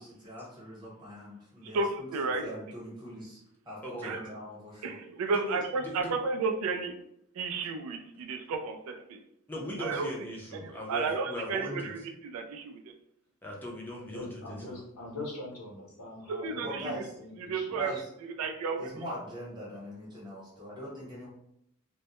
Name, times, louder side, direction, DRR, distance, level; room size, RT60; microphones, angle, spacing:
voice 1, 0.0-2.1 2.4-3.4 3.6-5.0 16.6-17.1 17.7-18.1 18.8-21.3, right 1 dB, 20° right, -6 dB, 1.0 m, -41 dB
voice 2, 1.6-2.5 4.0-4.2 4.8-7.0 7.4-9.2 9.8-10.1 10.9-12.9 16.3-17.0 17.4-17.9 18.2-19.0, right 4 dB, 70° right, 6 dB, 0.3 m, -33 dB
voice 3, 3.8-4.1 5.3-6.1 9.5-12.0 13.4-14.8, left 1 dB, 10° left, -2 dB, 0.5 m, -39 dB
voice 4, 14.0-17.8, left 2 dB, 75° left, -2 dB, 0.8 m, -43 dB
2.2 x 2.0 x 2.8 m, 0.77 s
head